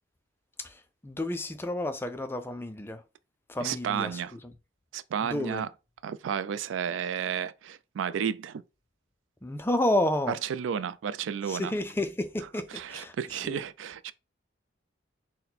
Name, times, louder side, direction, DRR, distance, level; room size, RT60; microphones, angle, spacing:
voice 1, 0.6-3.0 3.5-4.4 5.2-5.6 9.4-10.4 11.5-13.1 13.4-13.6, left 1 dB, 10° left, 0.3 m, -31 dB
voice 2, 3.6-4.3 4.9-5.7 6.0-8.6 10.3-11.7 12.7-14.1, right 8 dB, 85° right, 0.3 m, -32 dB
4.1 x 2.1 x 4.1 m
head